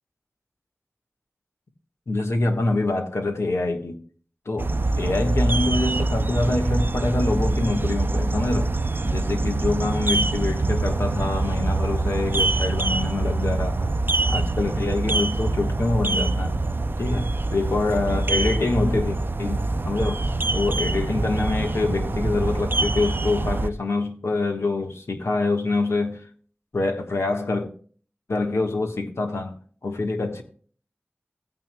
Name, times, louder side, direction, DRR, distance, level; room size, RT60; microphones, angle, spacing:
voice 1, 2.1-4.0 4.4-8.7 9.0-14.0 14.3-16.6 17.0-20.2 20.5-26.2 26.7-27.7 28.3-29.5 29.8-30.4, left 2 dB, 90° left, 1.3 m, -25 dB
sound 1, 4.6-23.7, right 2 dB, 50° right, 0.5 m, -24 dB
15.5 x 9.1 x 2.2 m
wide cardioid pair, 45°, 4 cm